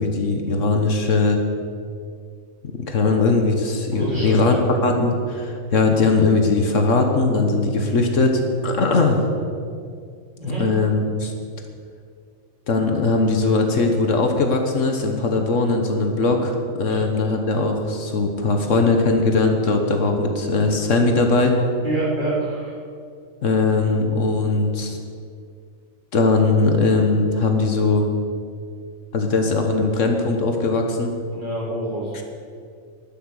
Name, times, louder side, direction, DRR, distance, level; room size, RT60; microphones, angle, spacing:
voice 1, 0.0-1.4 2.7-9.2 10.6-11.3 12.7-21.6 23.4-25.0 26.1-28.1 29.1-31.1 32.1-32.2, left 3 dB, 65° left, 4 dB, 1.6 m, -20 dB
voice 2, 3.9-4.6 10.4-10.6 16.8-17.0 21.8-22.7 31.3-32.2, right 1 dB, 35° right, -7 dB, 4.2 m, -26 dB
11.5 x 11.0 x 6.5 m, 2.2 s
omnidirectional pair, 1.4 m